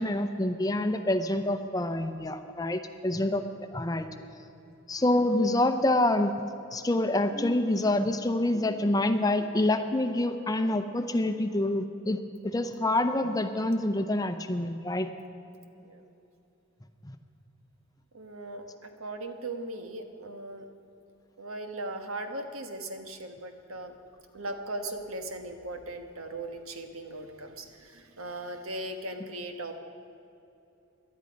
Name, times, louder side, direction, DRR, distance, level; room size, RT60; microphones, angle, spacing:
voice 1, 0.0-3.4 3.7-4.1 4.9-6.3 6.7-12.2 12.4-15.1 17.1-17.2, left 1 dB, 15° left, 8 dB, 0.6 m, -27 dB
voice 2, 18.1-20.6 21.4-24.0 24.3-29.8, right 2 dB, 85° right, 5 dB, 1.4 m, -38 dB
19.0 x 12.0 x 5.3 m, 2.8 s
head